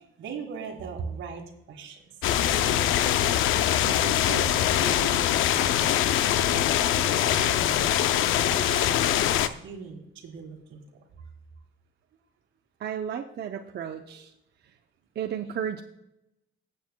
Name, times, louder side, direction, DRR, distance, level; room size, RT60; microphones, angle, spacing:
voice 1, 0.0-2.0 2.3-3.1 3.8-8.0 8.3-10.8 14.0-14.1, right 6 dB, 80° right, -2 dB, 1.6 m, -40 dB
sound 1, 2.2-9.5, left 11 dB, 90° left, 0.5 m, -23 dB
voice 2, 12.8-14.3 14.6-14.7 15.2-15.8, right 8 dB, 55° right, 4 dB, 0.7 m, -33 dB
18.5 x 7.9 x 2.2 m, 0.88 s
cardioid pair, 90°, 20 cm